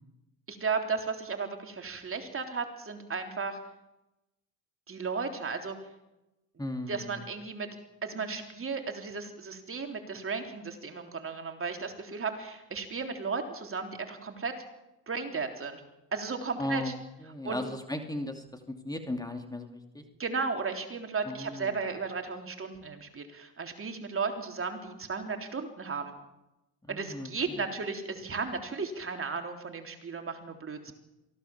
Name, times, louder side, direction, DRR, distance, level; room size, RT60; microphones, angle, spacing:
voice 1, 0.5-3.6 4.9-5.8 6.9-7.7 8.0-14.6 15.1-15.8 16.1-16.9 17.4-17.6 20.2-26.1 26.9-30.9, right 4 dB, 35° right, 5 dB, 3.7 m, -35 dB
voice 2, 6.6-7.2 16.6-16.9 17.2-20.0 21.2-21.7 26.9-27.6, left 1 dB, 10° left, 5 dB, 2.6 m, -36 dB
23.5 x 16.0 x 7.3 m, 0.95 s
supercardioid pair, 80°, 39 cm